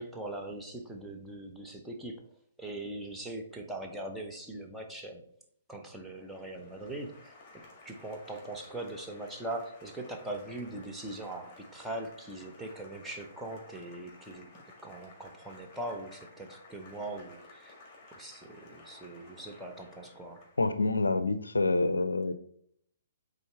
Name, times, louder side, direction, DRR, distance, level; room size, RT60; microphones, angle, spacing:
voice 1, 0.0-2.2 2.6-5.3 5.7-14.5 14.8-17.7 18.1-20.4, right 2 dB, 5° right, 1 dB, 0.8 m, -41 dB
Applause, 6.0-20.8, left 3 dB, 20° left, 2.0 m, -55 dB
voice 2, 20.6-22.3, left 3 dB, 75° left, 11 dB, 0.5 m, -27 dB
8.2 x 3.8 x 3.3 m, 0.66 s
figure-of-eight pair, 125°, 0 cm